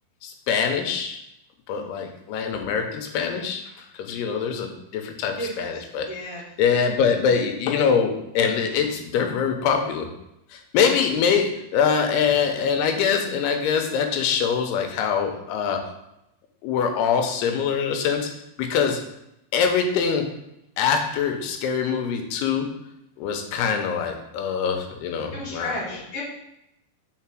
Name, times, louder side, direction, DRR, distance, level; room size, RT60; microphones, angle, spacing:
voice 1, 0.2-1.2 1.7-6.1 6.6-10.1 10.5-15.8 16.6-18.3 18.6-19.0 19.5-20.3 20.8-22.7 23.2-25.8, left 6 dB, 90° left, 4 dB, 2.8 m, -24 dB
voice 2, 6.0-6.4 25.3-26.2, left 1 dB, 45° left, -5 dB, 2.4 m, -32 dB
5.7 x 4.1 x 6.0 m, 0.83 s
omnidirectional pair, 4.6 m